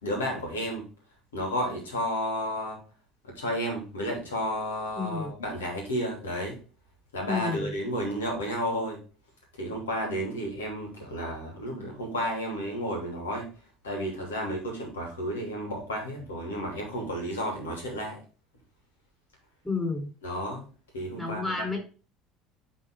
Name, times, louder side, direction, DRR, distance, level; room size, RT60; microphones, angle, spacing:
voice 1, 0.0-0.9 1.3-2.8 3.2-6.6 7.1-9.0 9.6-13.5 13.8-18.2 20.2-20.6 20.9-21.8, equal, 70° left, 1 dB, 2.9 m, -32 dB
voice 2, 4.9-5.3 7.3-7.7 19.6-20.1 21.2-21.8, left 4 dB, 10° left, 2 dB, 4.0 m, -30 dB
10.5 x 4.0 x 3.8 m, 0.36 s
figure-of-eight pair, 65°, 0 cm